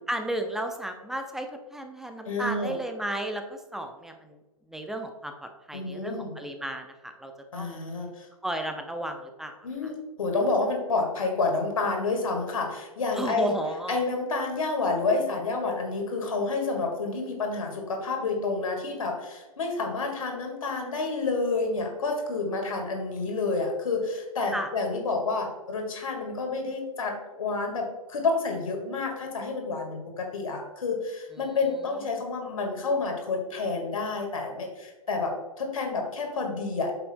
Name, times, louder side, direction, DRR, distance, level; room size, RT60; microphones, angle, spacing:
voice 1, 0.1-4.4 4.7-7.8 8.4-9.6 9.8-9.9 13.1-14.0 24.5-24.7 31.3-31.4, right 1 dB, ahead, 5 dB, 0.5 m, -33 dB
voice 2, 2.3-2.8 5.7-6.3 7.5-8.3 9.6-13.6 13.9-36.9, left 3 dB, 65° left, 2 dB, 1.9 m, -29 dB
8.5 x 6.7 x 2.2 m, 1.2 s
figure-of-eight pair, 115°, 19 cm